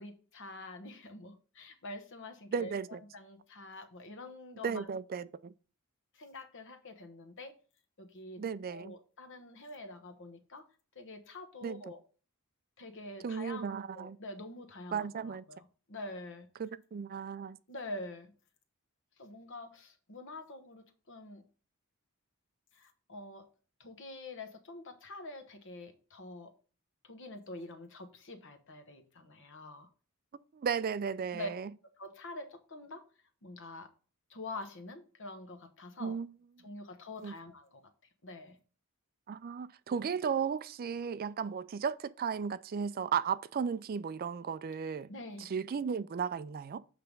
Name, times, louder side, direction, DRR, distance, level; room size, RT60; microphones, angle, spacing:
voice 1, 0.0-4.9 6.1-7.5 8.0-8.4 8.7-10.6 10.9-12.0 12.8-16.5 17.7-18.3 19.2-21.4 22.7-23.5 23.8-26.5 27.0-29.9 31.3-31.5 32.0-33.0 33.4-33.9 34.3-36.2 36.6-37.8 38.2-38.6 45.1-45.5, left 2 dB, 55° left, 1.1 m, -46 dB
voice 2, 2.5-3.0 4.6-5.5 8.4-8.9 11.6-11.8 13.2-14.2 14.9-15.4 16.6-17.6 30.5-31.7 36.0-36.3 37.2-37.3 39.3-45.1 45.4-46.8, right 6 dB, 40° right, 0.3 m, -35 dB
7.7 x 3.4 x 5.2 m
head